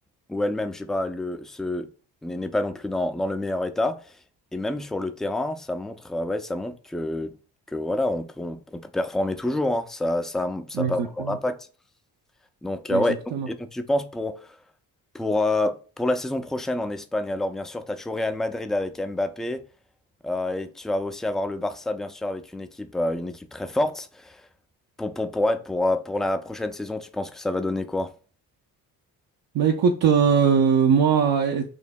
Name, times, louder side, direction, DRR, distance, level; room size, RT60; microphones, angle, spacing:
voice 1, 0.3-1.9 2.2-4.0 4.5-7.3 7.7-11.6 12.6-13.1 13.5-14.5 15.1-19.6 20.2-24.4 25.0-28.1, left 1 dB, ahead, 0.4 m, -27 dB
voice 2, 10.7-11.4 12.9-13.0 13.3-13.5 29.5-31.6, right 7 dB, 60° right, 0.6 m, -20 dB
6.3 x 2.7 x 2.3 m
supercardioid pair, 60°, 41 cm